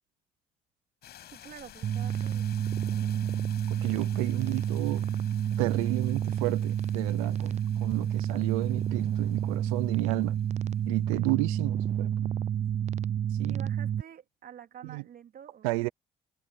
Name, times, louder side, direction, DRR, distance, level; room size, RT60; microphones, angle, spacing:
sound 1, 1.0-11.0, left 11 dB, 65° left, 8.0 m, -54 dB
voice 1, 1.3-2.6 13.5-15.9, right 9 dB, 55° right, 2.9 m, -48 dB
sound 2, 1.8-14.0, right 9 dB, 40° right, 0.4 m, -29 dB
voice 2, 3.7-5.1 5.6-10.4 10.8-12.1 13.3-13.7 14.8-15.0 15.6-15.9, right 26 dB, 90° right, 0.5 m, -32 dB
hypercardioid pair, 55°, 18 cm